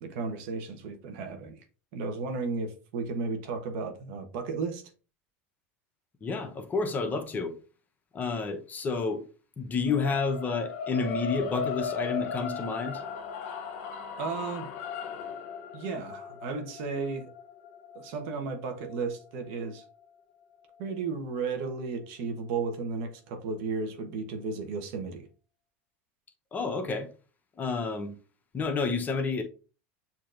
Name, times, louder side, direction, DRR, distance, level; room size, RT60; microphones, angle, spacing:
voice 1, 0.0-1.6 1.9-4.8 14.2-14.7 15.7-17.3 17.9-19.8 20.8-25.3, right 4 dB, 70° right, 1.0 m, -34 dB
voice 2, 6.2-7.6 8.1-9.2 9.6-13.0 26.5-27.1 27.6-28.2 28.5-29.4, left 4 dB, 25° left, 0.8 m, -30 dB
sound 1, 9.8-20.0, left 5 dB, 70° left, 0.8 m, -37 dB
6.8 x 2.9 x 2.5 m
supercardioid pair, 105°, 6 cm